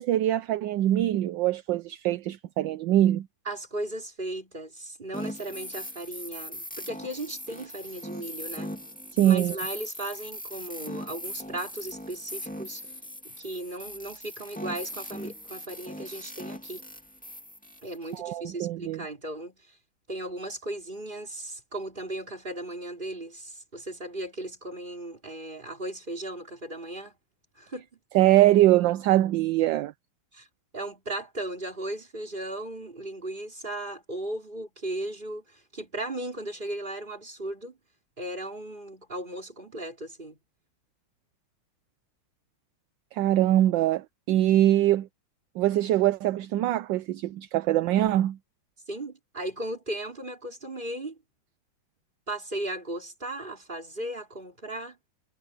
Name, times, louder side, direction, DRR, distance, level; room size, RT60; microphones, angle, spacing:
voice 1, 0.0-3.3 9.1-9.6 18.2-19.0 28.1-29.9 43.1-45.1 45.6-48.4, right 13 dB, 70° right, 1.2 m, -23 dB
voice 2, 3.4-8.8 9.2-12.9 13.2-16.9 17.8-19.8 20.1-27.2 27.6-28.0 30.3-30.5 30.7-37.8 38.2-40.4 48.9-51.2 52.3-55.0, right 1 dB, 20° right, 4.4 m, -36 dB
sound 1, 5.1-18.2, equal, 5° left, 2.0 m, -40 dB
omnidirectional pair, 2.3 m